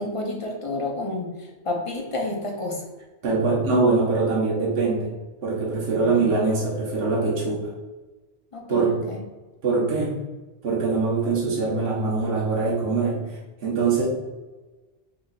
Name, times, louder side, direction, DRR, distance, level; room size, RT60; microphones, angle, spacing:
voice 1, 0.0-2.9 6.0-6.3 8.5-9.2, left 2 dB, 40° left, 0 dB, 0.5 m, -30 dB
voice 2, 3.2-5.1 5.4-7.7 8.7-8.9 9.6-10.1 10.6-13.2 13.6-14.0, right 4 dB, 60° right, -5 dB, 1.2 m, -23 dB
3.4 x 2.4 x 3.9 m, 1.2 s
omnidirectional pair, 1.1 m